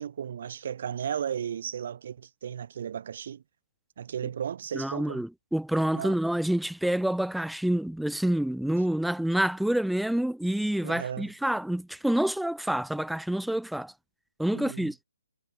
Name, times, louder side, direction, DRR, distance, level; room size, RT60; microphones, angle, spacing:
voice 1, 0.0-3.4 4.0-5.2 5.9-6.2 10.8-11.3 14.5-14.9, right 8 dB, 45° right, 3.0 m, -35 dB
voice 2, 4.7-13.9 14.4-14.9, right 1 dB, ahead, 0.9 m, -27 dB
figure-of-eight pair, 140°, 0 cm